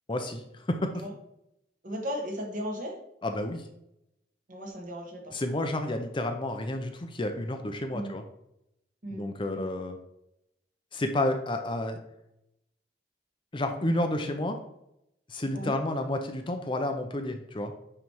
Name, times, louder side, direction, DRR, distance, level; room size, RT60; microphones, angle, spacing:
voice 1, 0.1-1.0 3.2-3.7 5.3-8.2 9.1-10.0 10.9-12.0 13.5-14.6 15.3-17.7, left 1 dB, 30° left, 6 dB, 0.6 m, -30 dB
voice 2, 1.8-2.9 4.5-5.3 7.9-8.1 9.0-9.6 15.5-15.7, equal, 50° right, 0 dB, 1.8 m, -36 dB
9.4 x 3.3 x 4.6 m, 0.81 s
head